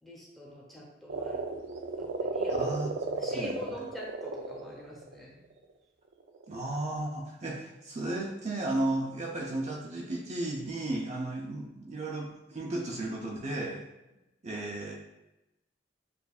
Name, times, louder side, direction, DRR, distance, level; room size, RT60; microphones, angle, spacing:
voice 1, 0.0-1.4 2.0-2.7 3.1-5.4 14.1-14.2, equal, ahead, -4 dB, 0.9 m, -44 dB
sound 1, 1.1-5.1 6.3-6.7, right 3 dB, 90° right, 0.5 m, -33 dB
voice 2, 2.6-3.8 6.5-13.9 14.4-14.9, right 2 dB, 40° right, -1 dB, 0.5 m, -34 dB
6.8 x 2.5 x 2.4 m, 0.96 s
head